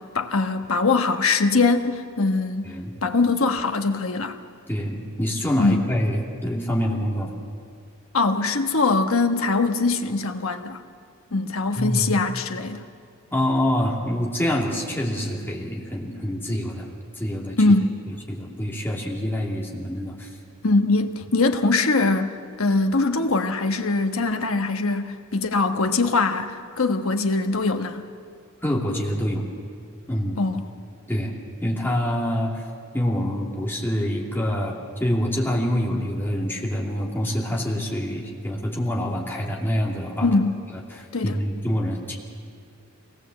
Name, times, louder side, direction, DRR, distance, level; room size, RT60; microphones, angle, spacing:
voice 1, 0.0-2.7 3.0-4.4 5.6-5.8 8.1-10.8 11.3-12.8 17.6-17.9 20.6-28.1 30.4-30.7 40.2-40.6 41.1-41.4, left 3 dB, 70° left, 6 dB, 1.2 m, -22 dB
voice 2, 4.7-7.3 11.8-12.1 13.3-16.9 17.2-17.6 18.3-20.3 28.6-29.4 30.1-30.4 31.1-31.3 31.6-32.6 32.9-40.3 40.9-42.2, equal, 10° left, -2 dB, 2.7 m, -26 dB
23.5 x 18.0 x 7.7 m, 2.2 s
head